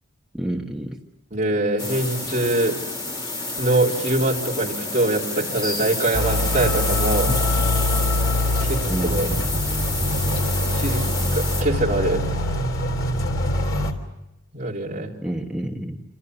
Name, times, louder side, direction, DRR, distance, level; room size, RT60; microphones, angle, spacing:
voice 1, 0.3-1.0 7.3-7.4 8.9-9.6 15.2-16.0, right 1 dB, 5° right, -1 dB, 1.3 m, -29 dB
voice 2, 1.3-2.8 3.6-7.3 8.6-8.8 9.1-9.3 10.7-11.0 11.3-12.2 14.5-15.1, right 2 dB, 35° right, -2 dB, 4.0 m, -23 dB
sound 1, 1.8-11.6, left 2 dB, 20° left, 3.2 m, -29 dB
sound 2, 6.1-13.9, left 1 dB, 85° left, 3.2 m, -23 dB
28.0 x 26.5 x 6.9 m, 0.93 s
head